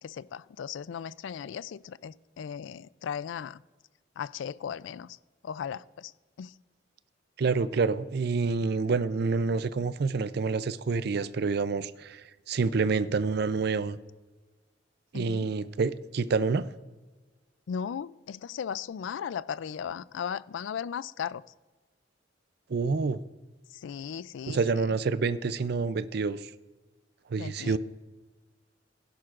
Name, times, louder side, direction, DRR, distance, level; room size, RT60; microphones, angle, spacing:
voice 1, 0.0-3.6 4.2-5.2 5.4-6.1 6.4-6.6 15.1-15.5 17.7-21.4 23.7-25.0 27.4-27.8, left 7 dB, 85° left, 0.3 m, -37 dB
voice 2, 7.4-12.2 12.5-14.0 15.1-16.7 22.7-23.2 24.5-26.5 27.3-27.8, right 4 dB, 60° right, 0.4 m, -27 dB
16.5 x 10.5 x 2.5 m
head